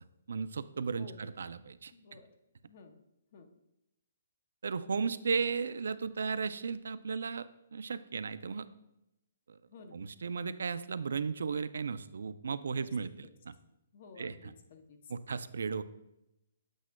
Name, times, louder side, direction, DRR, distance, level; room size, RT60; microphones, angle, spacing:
voice 1, 0.3-1.9 4.6-7.5 7.7-8.7 9.5-9.6 9.9-13.5 14.2-14.5 15.1-15.8, right 5 dB, 70° right, 14 dB, 0.4 m, -35 dB
voice 2, 1.0-1.3 1.9-2.3 2.6-3.0 3.3-3.5 9.7-10.0 12.7-12.9 13.2-13.3 13.9-15.1, left 4 dB, 35° left, 7 dB, 0.6 m, -53 dB
8.1 x 7.3 x 2.2 m, 0.88 s
hypercardioid pair, 180°, 0 cm